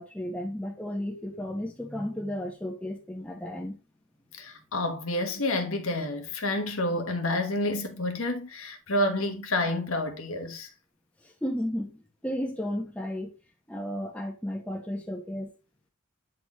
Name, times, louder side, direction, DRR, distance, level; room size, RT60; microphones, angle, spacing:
voice 1, 0.0-3.8 11.4-13.3 13.7-15.5, equal, 5° left, 1.3 m, -33 dB
voice 2, 4.3-10.7, left 1 dB, 70° left, 1.4 m, -29 dB
9.1 x 4.2 x 3.1 m
head